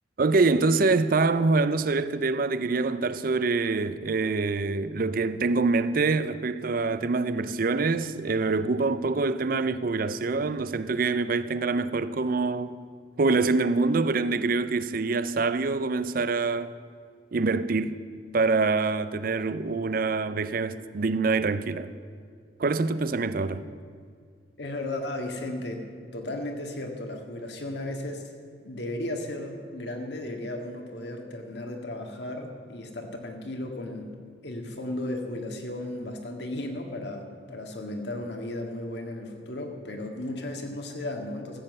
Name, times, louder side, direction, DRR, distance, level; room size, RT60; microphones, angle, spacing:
voice 1, 0.2-12.8 13.2-16.7 17.3-18.0 18.3-21.9 22.6-23.7, right 3 dB, 50° right, 0.5 m, -25 dB
voice 2, 24.6-25.8 26.1-28.2 28.6-34.1 34.4-41.6, left 1 dB, 65° left, 1.8 m, -35 dB
14.5 x 7.7 x 7.8 m
head